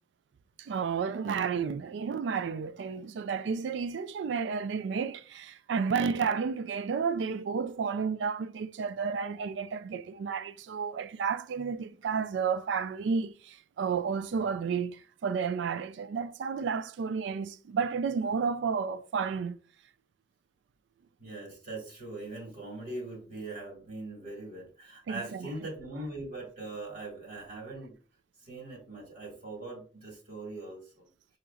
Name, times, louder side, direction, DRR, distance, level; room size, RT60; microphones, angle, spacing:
voice 1, 0.6-19.5 25.1-25.5, right 6 dB, 80° right, 0.3 m, -31 dB
voice 2, 1.2-1.7 21.2-28.0 28.4-31.1, right 2 dB, 45° right, 1.8 m, -41 dB
6.2 x 2.8 x 2.4 m
head